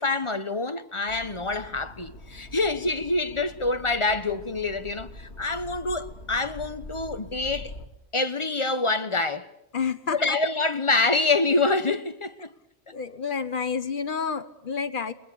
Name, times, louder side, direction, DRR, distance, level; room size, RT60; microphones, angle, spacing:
voice 1, 0.0-7.7 8.1-9.5 10.1-12.5, left 3 dB, 30° left, 1.2 m, -26 dB
sound 1, 1.1-7.9, left 1 dB, 85° left, 2.6 m, -44 dB
voice 2, 9.7-10.4 12.9-15.1, left 6 dB, 50° left, 1.3 m, -29 dB
29.5 x 22.5 x 7.0 m
omnidirectional pair, 1.1 m